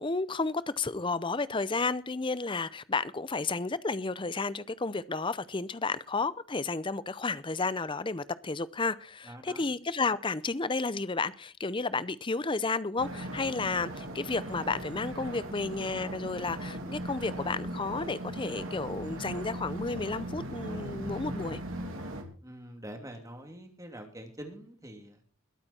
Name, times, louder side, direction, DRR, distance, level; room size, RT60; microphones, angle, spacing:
voice 1, 0.0-21.6, left 3 dB, 20° left, 17 dB, 0.6 m, -32 dB
voice 2, 9.2-9.6 22.4-25.2, right 1 dB, 15° right, 4 dB, 2.7 m, -45 dB
sound 1, 13.0-22.2, right 1 dB, 65° right, 3.3 m, -38 dB
21.5 x 8.6 x 4.4 m, 0.37 s
head